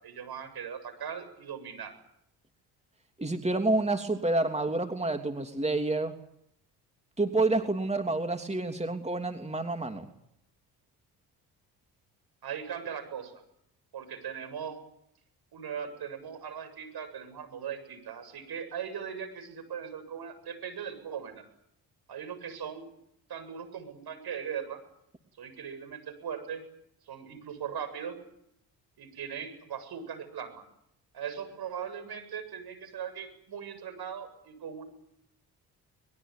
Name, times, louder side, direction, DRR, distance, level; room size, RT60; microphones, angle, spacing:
voice 1, 0.0-1.9 12.4-13.3 13.9-14.8 15.5-21.4 22.1-22.8 23.3-24.8 25.4-26.7 27.1-28.1 29.0-30.6 31.1-34.9, right 7 dB, 65° right, 10 dB, 8.0 m, -39 dB
voice 2, 3.2-6.1 7.2-10.1, right 2 dB, 15° right, 6 dB, 3.1 m, -28 dB
23.0 x 21.5 x 9.2 m, 0.76 s
supercardioid pair, 60°, 41 cm